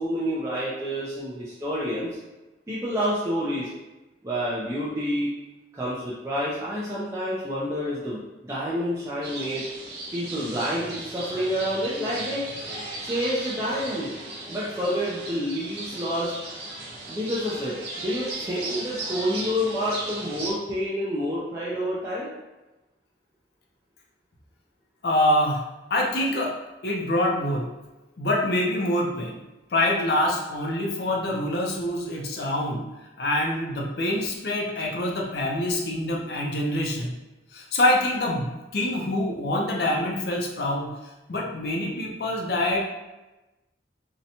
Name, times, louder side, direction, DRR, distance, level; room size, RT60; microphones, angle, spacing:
voice 1, 0.0-2.2 2.7-3.7 4.2-5.3 5.7-9.6 10.1-12.4 13.0-14.2 14.5-16.3 17.1-22.3, equal, 15° right, -9 dB, 0.4 m, -28 dB
sound 1, 9.2-20.5, right 2 dB, 60° right, 0.6 m, -36 dB
voice 2, 25.0-25.6 25.9-26.6 26.8-27.6 28.2-29.4 29.7-32.9 33.2-37.1 37.5-40.9 41.3-42.8, left 1 dB, 55° left, -1 dB, 0.5 m, -25 dB
2.7 x 2.1 x 2.7 m, 1.1 s
head